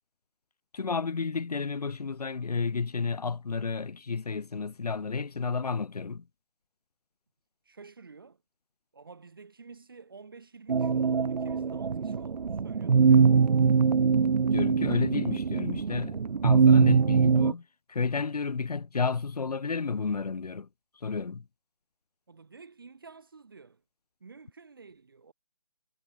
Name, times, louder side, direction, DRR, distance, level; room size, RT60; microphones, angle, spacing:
voice 1, 0.7-6.2 14.5-17.6 17.9-20.7 21.0-21.4, left 5 dB, 70° left, 0.9 m, -31 dB
voice 2, 7.7-8.4 8.9-13.3 22.3-23.8 24.2-25.3, right 4 dB, 35° right, 1.9 m, -50 dB
sound 1, 10.7-17.5, right 5 dB, 85° right, 0.7 m, -23 dB
hypercardioid pair, 180°, 20 cm